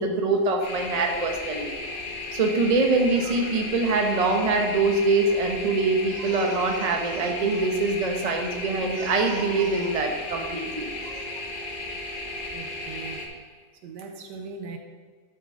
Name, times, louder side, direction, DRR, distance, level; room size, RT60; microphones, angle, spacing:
voice 1, 0.0-1.7 2.3-11.2, right 3 dB, 30° right, 2 dB, 0.7 m, -24 dB
sound 1, 0.6-13.3, left 2 dB, 50° left, 1.6 m, -35 dB
voice 2, 12.5-13.4 13.8-14.8, right 4 dB, 70° right, 5 dB, 1.3 m, -40 dB
11.5 x 7.0 x 3.8 m, 1.6 s
omnidirectional pair, 2.0 m